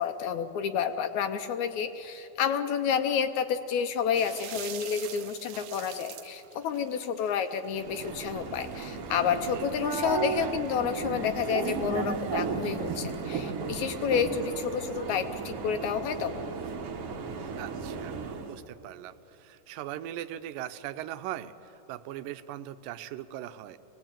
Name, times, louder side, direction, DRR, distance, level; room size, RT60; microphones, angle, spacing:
voice 1, 0.0-16.3, left 7 dB, 75° left, 9 dB, 1.9 m, -30 dB
sound 1, 4.1-13.3, right 11 dB, 70° right, 1.8 m, -47 dB
sound 2, 7.7-18.6, right 5 dB, 55° right, 2.0 m, -34 dB
voice 2, 17.6-18.2 18.5-23.8, right 12 dB, 85° right, 11 dB, 2.4 m, -40 dB
23.5 x 18.5 x 8.9 m, 3.0 s
omnidirectional pair, 3.8 m